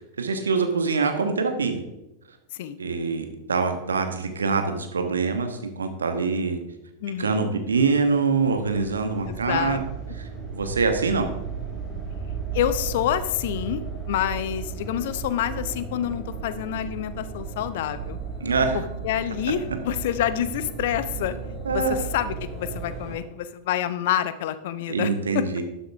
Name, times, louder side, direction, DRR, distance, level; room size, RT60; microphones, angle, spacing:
voice 1, 0.2-1.8 2.8-6.6 7.2-9.8 10.5-11.3 18.4-18.8 21.6-22.0 24.9-25.6, right 4 dB, 70° right, 6 dB, 1.5 m, -24 dB
voice 2, 7.0-7.5 9.3-9.8 12.5-18.2 18.7-21.3 21.7-25.6, left 11 dB, 55° left, 13 dB, 0.7 m, -28 dB
sound 1, 8.4-23.2, right 5 dB, 5° right, 4.4 m, -35 dB
12.5 x 9.9 x 3.6 m, 0.92 s
figure-of-eight pair, 90°, 0 cm